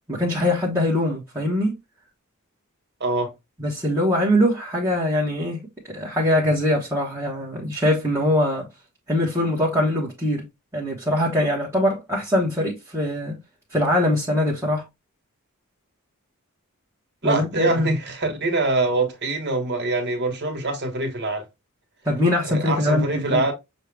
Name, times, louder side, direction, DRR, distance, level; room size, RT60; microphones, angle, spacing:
voice 1, 0.1-1.7 3.6-5.6 5.9-8.7 9.1-10.5 10.7-13.4 13.7-14.8 17.2-17.9 22.0-23.5, left 1 dB, 10° right, 1.2 m, -22 dB
voice 2, 3.0-3.3 17.2-21.4 22.5-23.5, right 2 dB, 50° right, 1.4 m, -24 dB
6.4 x 2.4 x 3.3 m
head